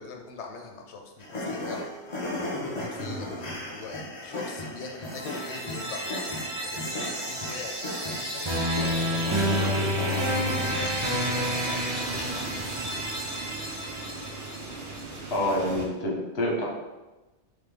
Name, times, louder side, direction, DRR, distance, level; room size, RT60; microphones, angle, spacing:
voice 1, 0.0-1.9 2.6-7.7 8.0-12.8, left 4 dB, 90° left, 2 dB, 1.0 m, -43 dB
sound 1, 1.2-11.4, left 1 dB, 40° left, 0.8 m, -35 dB
sound 2, 5.0-15.0, equal, 30° right, 0.8 m, -30 dB
sound 3, 8.8-15.9, right 2 dB, 80° right, 1.1 m, -39 dB
voice 2, 15.3-16.7, left 1 dB, 70° left, -2 dB, 1.3 m, -27 dB
3.7 x 3.4 x 3.5 m, 1.1 s
omnidirectional pair, 1.1 m